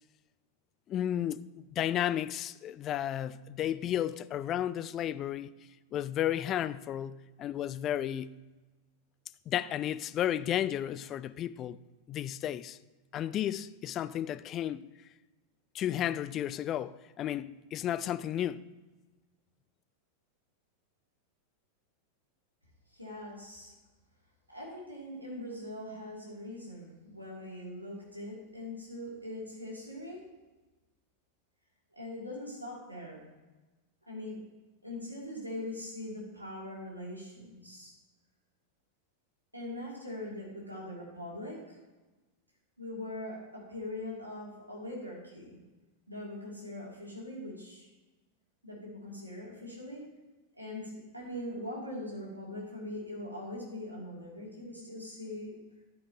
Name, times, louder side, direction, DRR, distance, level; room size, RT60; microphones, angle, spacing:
voice 1, 0.9-1.4 1.7-5.5 5.9-8.3 9.5-11.8 12.1-12.8 13.1-14.9 15.7-18.6, left 11 dB, 30° left, 0.3 m, -33 dB
voice 2, 22.9-23.7 24.5-30.2 32.0-33.2 34.1-34.4 34.8-37.9 39.5-41.8 42.8-45.6 46.1-47.9 48.6-50.1 50.6-55.6, left 1 dB, 90° right, 2.7 m, -42 dB
11.0 x 9.2 x 2.9 m
figure-of-eight pair, 90°, 0 cm